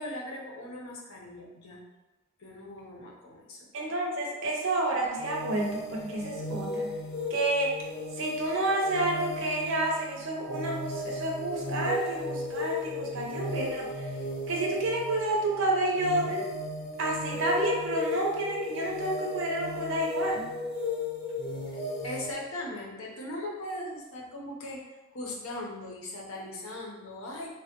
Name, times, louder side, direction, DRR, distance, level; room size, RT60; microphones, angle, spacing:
voice 1, 0.0-1.8 2.4-3.7 22.0-24.8 25.1-27.5, left 1 dB, 70° left, -2 dB, 0.7 m, -39 dB
voice 2, 3.7-7.0 7.3-7.8 8.2-14.1 14.5-16.5 17.0-20.5, right 2 dB, 60° right, 0 dB, 0.6 m, -29 dB
sound 1, 5.2-22.3, left 2 dB, 30° left, 0.5 m, -35 dB
3.3 x 2.2 x 2.8 m, 1.1 s
head